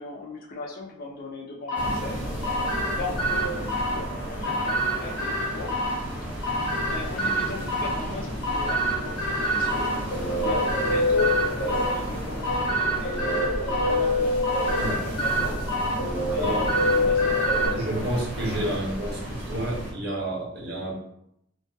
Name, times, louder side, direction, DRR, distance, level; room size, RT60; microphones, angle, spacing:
voice 1, 0.0-2.2 2.9-5.7 6.6-9.2 9.5-9.9 10.4-15.6 16.3-17.4 20.8-21.0, left 3 dB, 40° left, -2 dB, 0.4 m, -37 dB
sound 1, 1.7-17.7, right 1 dB, 90° left, 1.0 m, -28 dB
sound 2, 1.7-19.9, equal, 5° right, 0.8 m, -33 dB
sound 3, 9.7-18.4, left 2 dB, 65° left, 0.8 m, -27 dB
voice 2, 16.4-16.7 17.7-21.0, right 1 dB, 50° right, -3 dB, 0.7 m, -30 dB
2.2 x 2.2 x 2.6 m, 0.74 s
head